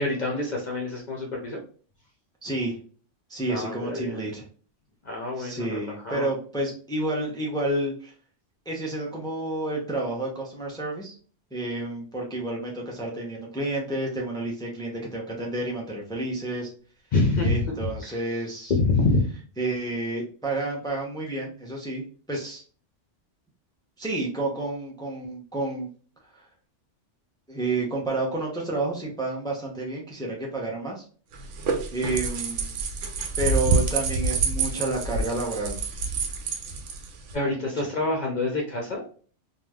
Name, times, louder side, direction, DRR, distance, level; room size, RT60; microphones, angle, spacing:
voice 1, 0.0-1.6 3.5-4.3 5.0-6.3 17.1-17.7 18.0-18.2 18.7-19.2 37.3-39.0, left 2 dB, 50° left, -1 dB, 0.6 m, -26 dB
voice 2, 2.4-2.8 3.3-4.4 5.4-8.1 8.7-11.1 11.5-16.7 17.4-18.7 19.6-22.6 24.0-25.9 26.3-26.5 27.5-31.0 31.9-32.8 33.4-35.8 37.6-37.7, right 2 dB, 5° left, -2 dB, 0.4 m, -30 dB
sound 1, 31.3-37.4, right 4 dB, 90° right, 0.9 m, -27 dB
3.2 x 2.3 x 2.3 m, 0.42 s
omnidirectional pair, 1.2 m